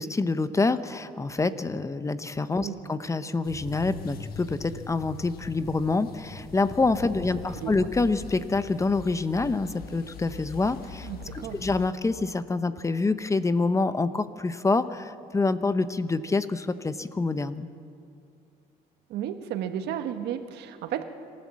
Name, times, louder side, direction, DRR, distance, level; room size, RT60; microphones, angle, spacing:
voice 1, 0.0-11.1 11.3-17.7, left 3 dB, 20° left, 13 dB, 0.7 m, -26 dB
sound 1, 3.4-11.9, left 5 dB, 65° left, 1.4 m, -42 dB
voice 2, 11.0-11.6 19.1-21.0, right 10 dB, 80° right, 8 dB, 1.4 m, -33 dB
26.5 x 13.0 x 7.5 m, 2.4 s
cardioid pair, 110°, 17 cm